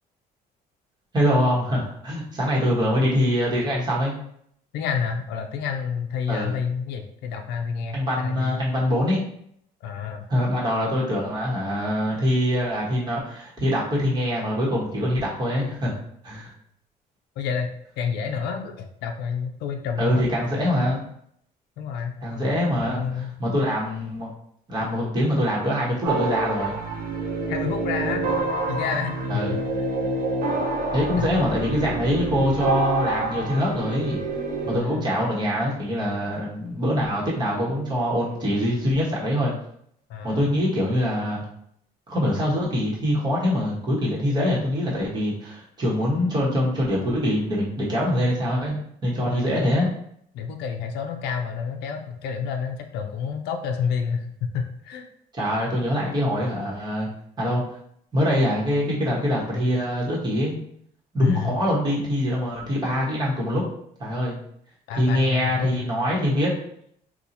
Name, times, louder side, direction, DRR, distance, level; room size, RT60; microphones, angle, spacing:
voice 1, 1.1-4.1 6.3-6.5 7.9-9.2 10.3-15.9 16.2-16.5 20.0-21.0 22.2-24.3 24.7-26.8 29.3-29.5 30.9-34.2 34.6-39.5 40.2-41.4 42.1-49.9 55.3-57.1 57.4-57.6 58.1-60.5 61.1-63.6 64.0-64.4 65.0-66.5, equal, 25° right, -5 dB, 1.2 m, -24 dB
voice 2, 4.7-8.6 9.8-10.3 17.4-20.2 21.8-22.2 22.9-23.4 27.5-28.2 28.7-29.6 31.1-31.7 34.7-35.1 40.1-40.5 49.2-49.7 50.3-55.1 61.2-61.6 64.9-65.9, left 6 dB, 80° left, 5 dB, 0.4 m, -29 dB
sound 1, 26.0-34.8, right 2 dB, 60° right, 0.9 m, -27 dB
2.8 x 2.3 x 4.0 m, 0.69 s
cardioid pair, 110°, 17 cm